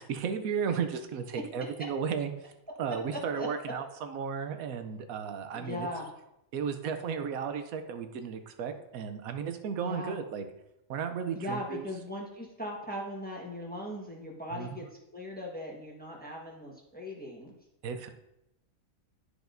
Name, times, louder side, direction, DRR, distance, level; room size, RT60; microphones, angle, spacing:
voice 1, 0.0-2.5 2.8-5.9 6.5-10.4 10.9-11.8 14.5-14.8 17.8-18.1, right 6 dB, 85° right, 7 dB, 1.1 m, -34 dB
voice 2, 3.1-3.5 5.5-6.1 9.8-10.2 11.3-14.8 15.1-17.5, left 1 dB, 5° left, -2 dB, 1.2 m, -39 dB
11.0 x 4.9 x 2.6 m, 0.86 s
omnidirectional pair, 1.5 m